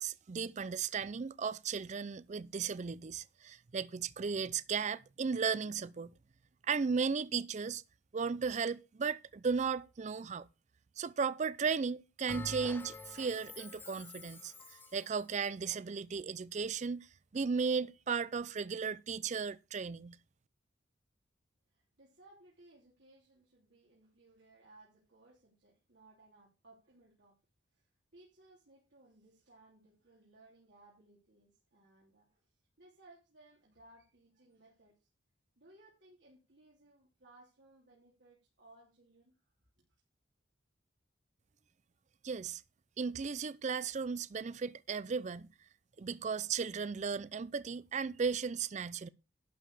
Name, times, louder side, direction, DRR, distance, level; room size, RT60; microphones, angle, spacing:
voice 1, 0.0-6.1 6.7-7.8 8.1-10.5 11.0-17.1 17.3-20.2 42.2-42.6 43.0-45.5 46.0-49.1, right 5 dB, 40° right, 0.4 m, -35 dB
Bell, 12.3-15.1, left 2 dB, 10° left, 0.9 m, -47 dB
voice 2, 21.7-27.4 27.7-27.8 28.1-32.4 32.8-35.1 35.6-39.3, right 2 dB, 75° right, 3.1 m, -62 dB
11.5 x 4.7 x 6.7 m
head